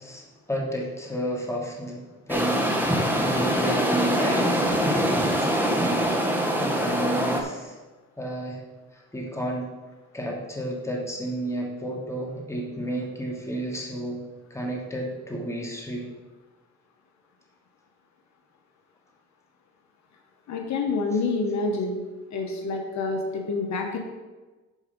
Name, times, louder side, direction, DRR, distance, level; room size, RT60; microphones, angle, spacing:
voice 1, 0.0-7.8 8.2-8.6 8.9-9.7 10.1-14.2 14.5-16.1, right 1 dB, 10° left, -2 dB, 2.9 m, -32 dB
sound 1, 2.3-7.4, equal, 5° right, 1.7 m, -24 dB
voice 2, 20.5-22.0 22.3-24.0, left 3 dB, 65° left, 2 dB, 1.4 m, -27 dB
12.5 x 4.9 x 5.4 m, 1.2 s
cardioid pair, 90°, 30 cm